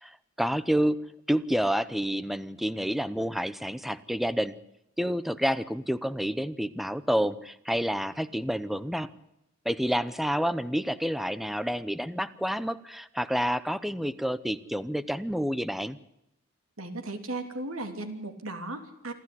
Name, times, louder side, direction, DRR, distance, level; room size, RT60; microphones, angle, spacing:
voice 1, 0.0-1.0 1.3-4.5 5.0-9.1 9.6-16.0, equal, ahead, 15 dB, 0.8 m, -29 dB
voice 2, 16.8-19.1, right 2 dB, 70° right, 6 dB, 3.2 m, -36 dB
28.0 x 12.5 x 10.0 m, 0.86 s
head